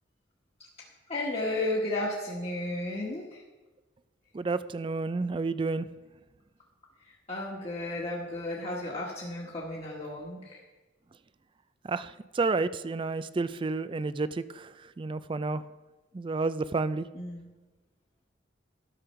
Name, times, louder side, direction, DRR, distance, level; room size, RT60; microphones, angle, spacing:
voice 1, 1.1-3.4 7.3-10.6 17.1-17.5, left 1 dB, 35° left, -5 dB, 1.5 m, -33 dB
voice 2, 4.3-5.9 11.8-15.6 16.1-17.1, right 3 dB, 25° right, 14 dB, 0.3 m, -30 dB
12.5 x 6.8 x 5.7 m, 1.2 s
head